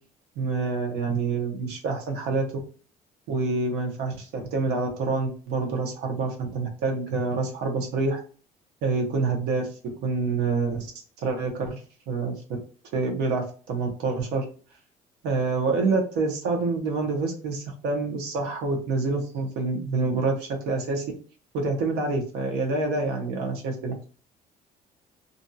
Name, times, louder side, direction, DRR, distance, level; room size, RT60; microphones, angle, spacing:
voice 1, 0.4-2.6 3.3-8.2 8.8-9.7 10.0-10.9 11.2-12.4 12.9-14.4 15.2-21.0 21.5-24.0, right 3 dB, 90° right, 2 dB, 0.9 m, -27 dB
2.6 x 2.3 x 2.6 m, 0.39 s
cardioid pair, 110°, 17 cm